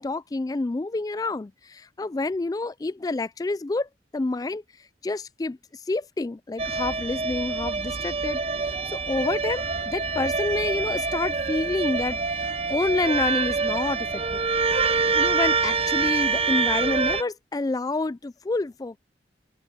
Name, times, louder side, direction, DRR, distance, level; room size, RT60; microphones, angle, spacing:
voice 1, 0.0-4.6 5.0-5.6 5.9-14.4 15.2-19.0, left 3 dB, 20° left, 0.3 m, -28 dB
sound 1, 6.6-17.2, right 4 dB, 35° right, 0.7 m, -26 dB
open air
head